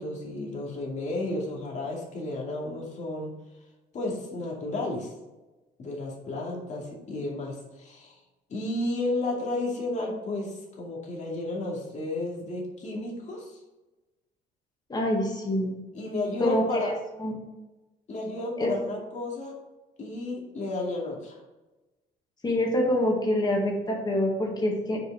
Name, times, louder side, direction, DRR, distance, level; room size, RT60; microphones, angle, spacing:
voice 1, 0.0-3.3 3.9-5.1 5.8-8.2 8.5-13.6 15.9-17.0 18.1-19.6 20.0-21.4, left 2 dB, 45° left, -2 dB, 2.4 m, -32 dB
voice 2, 14.9-15.7 16.4-16.9 17.2-17.3 18.6-18.7 22.4-25.0, left 1 dB, 25° left, -1 dB, 2.1 m, -26 dB
6.6 x 5.0 x 4.8 m, 1.1 s
cardioid pair, 110°, 17 cm